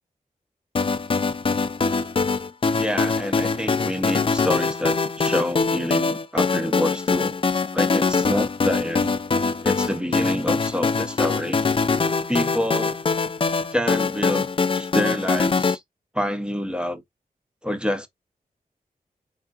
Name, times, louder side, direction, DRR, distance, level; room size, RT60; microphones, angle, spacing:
sound 1, 0.8-15.8, left 4 dB, 35° left, 0.4 m, -23 dB
voice 1, 2.8-7.4 7.7-9.1 9.6-11.6 12.3-12.9 13.7-15.8 16.1-17.0 17.6-18.1, left 1 dB, 5° right, 0.8 m, -27 dB
3.7 x 3.6 x 2.3 m
wide cardioid pair, 70°, 15 cm